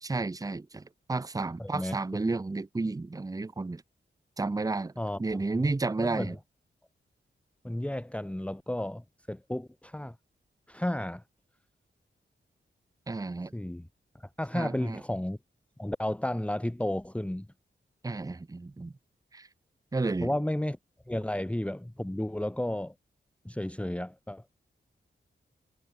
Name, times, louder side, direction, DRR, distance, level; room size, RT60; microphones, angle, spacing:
voice 1, 0.0-3.8 4.4-4.9 5.2-6.4 13.1-13.5 14.5-15.0 18.0-18.9 19.3-19.5 19.9-20.3, right 3 dB, 20° right, 0.7 m, -32 dB
voice 2, 1.6-1.9 5.0-5.2 6.0-6.3 7.6-10.2 10.7-11.2 13.5-13.9 14.2-15.4 15.8-17.5 20.2-20.8 21.1-22.9 23.5-24.4, left 1 dB, 5° left, 1.7 m, -32 dB
wide cardioid pair, 125°, 19 cm